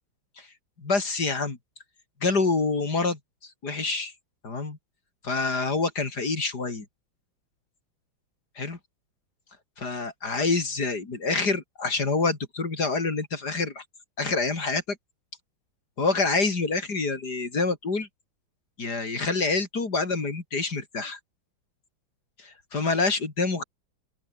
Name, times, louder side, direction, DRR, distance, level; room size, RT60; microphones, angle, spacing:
voice 1, 0.8-1.6 2.2-4.1 4.4-4.8 5.2-6.9 8.6-8.8 9.8-13.8 14.2-15.0 16.0-18.1 18.8-21.2 22.4-23.6, left 3 dB, 55° left, 3.9 m, -27 dB
open air
omnidirectional pair, 2.2 m